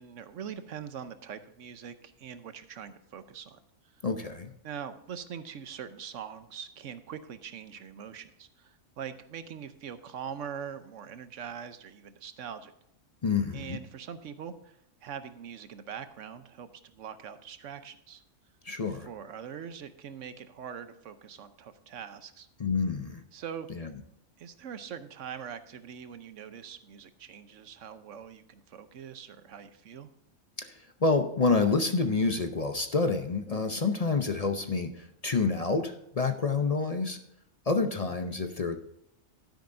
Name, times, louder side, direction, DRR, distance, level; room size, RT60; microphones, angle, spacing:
voice 1, 0.0-3.6 4.6-12.7 13.5-18.2 18.9-22.5 23.3-23.9 24.4-30.1 38.0-38.2, right 8 dB, 85° right, 11 dB, 1.2 m, -43 dB
voice 2, 4.0-4.5 13.2-13.8 18.6-19.1 22.6-23.2 23.7-23.9 30.6-30.7 31.0-37.2 37.7-38.8, left 4 dB, 40° left, 7 dB, 0.7 m, -28 dB
12.0 x 10.0 x 2.6 m, 0.78 s
omnidirectional pair, 1.3 m